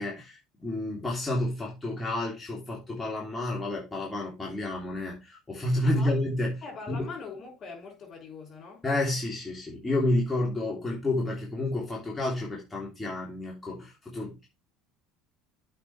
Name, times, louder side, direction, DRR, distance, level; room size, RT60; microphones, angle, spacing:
voice 1, 0.0-6.5 6.9-7.1 8.8-14.5, left 1 dB, 15° left, 3.1 m, -30 dB
voice 2, 5.8-6.2 6.6-8.9, left 4 dB, 45° left, 5.7 m, -42 dB
8.4 x 5.4 x 4.3 m
hypercardioid pair, 80°, 0 cm